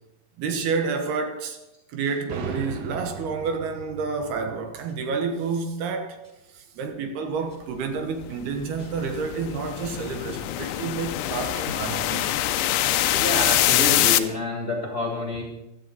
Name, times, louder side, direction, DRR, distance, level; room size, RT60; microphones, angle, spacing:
voice 1, 0.4-1.6 1.9-6.2 6.5-12.4, right 5 dB, 75° right, 3.1 m, -29 dB
sound 1, 2.3-6.0, right 4 dB, 90° right, 3.8 m, -38 dB
sound 2, 8.2-14.2, left 14 dB, 85° left, 2.7 m, -24 dB
voice 2, 13.1-15.4, left 1 dB, 25° left, 2.3 m, -28 dB
16.0 x 12.5 x 4.1 m
omnidirectional pair, 4.8 m